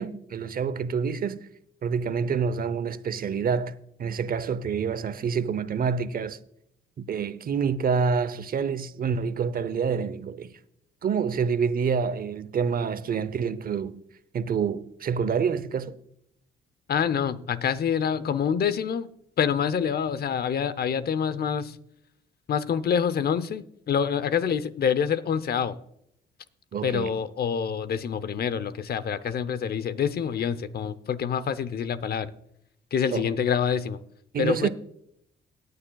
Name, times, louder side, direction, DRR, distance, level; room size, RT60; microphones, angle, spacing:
voice 1, 0.0-1.4 1.8-6.4 7.0-10.5 11.0-14.0 14.3-16.0 26.7-27.1 33.1-33.2 34.3-34.7, right 6 dB, 45° right, 0.7 m, -27 dB
voice 2, 16.9-19.1 19.4-21.8 22.5-25.8 26.8-32.3 32.9-34.0 34.4-34.7, left 7 dB, 50° left, 0.8 m, -26 dB
18.0 x 9.6 x 2.3 m
cardioid pair, 90°, 20 cm